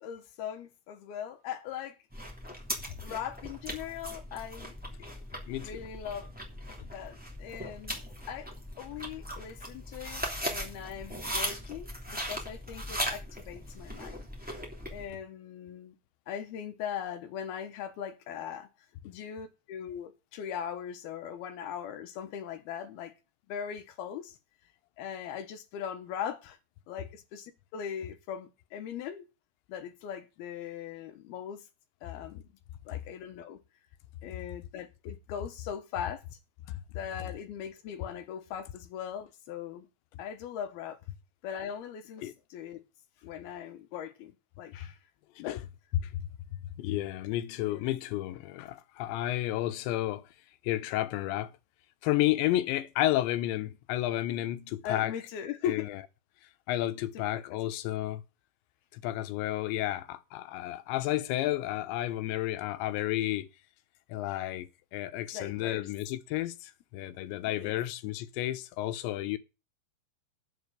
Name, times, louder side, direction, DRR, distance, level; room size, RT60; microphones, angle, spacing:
voice 1, 0.0-2.0 3.0-4.8 5.6-6.3 6.8-8.5 8.8-14.2 14.9-16.0 16.3-18.7 19.0-23.1 23.5-24.4 25.0-26.6 26.9-29.3 29.7-31.6 32.0-32.4 32.9-33.6 34.2-36.2 36.9-39.9 40.2-41.0 41.4-42.8 43.2-44.3 44.6-45.0 45.4-45.6 47.6-47.8 54.8-55.9 57.3-57.4 65.3-65.9 67.5-67.8, left 8 dB, 70° left, 2.9 m, -40 dB
sound 1, 2.1-15.1, equal, 5° right, 1.7 m, -39 dB
voice 2, 5.5-5.9 36.7-36.8 42.2-42.3 45.5-45.6 45.9-50.2 50.6-51.5 52.0-55.1 55.7-55.9 56.7-58.2 58.9-63.5 64.1-69.4, left 14 dB, 85° left, 3.1 m, -31 dB
8.5 x 7.6 x 8.0 m
omnidirectional pair, 5.0 m